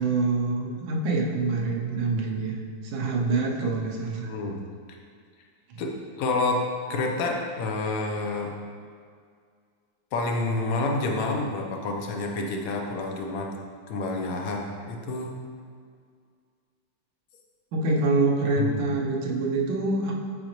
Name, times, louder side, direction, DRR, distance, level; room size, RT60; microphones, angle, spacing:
voice 1, 0.0-2.5 2.8-4.3 17.7-20.1, right 3 dB, 80° right, 0 dB, 1.5 m, -25 dB
voice 2, 4.2-4.6 5.8-8.5 10.1-13.5 13.9-15.3 18.6-18.7, left 3 dB, 60° left, 1 dB, 1.0 m, -28 dB
8.1 x 4.9 x 3.0 m, 2.1 s
omnidirectional pair, 2.1 m